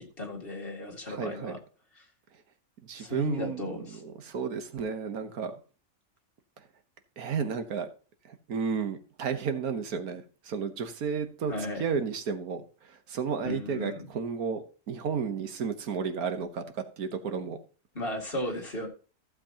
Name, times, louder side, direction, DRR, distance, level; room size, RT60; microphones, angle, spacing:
voice 1, 0.0-1.6 2.0-2.1 3.0-4.0 11.5-11.8 13.4-14.1 17.9-18.9, left 1 dB, 40° left, 0 dB, 2.3 m, -35 dB
voice 2, 1.1-1.6 2.8-5.5 7.2-7.9 8.5-11.5 11.8-12.6 13.1-17.6, right 6 dB, 90° right, 8 dB, 1.6 m, -32 dB
14.5 x 7.6 x 2.9 m, 0.36 s
omnidirectional pair, 1.5 m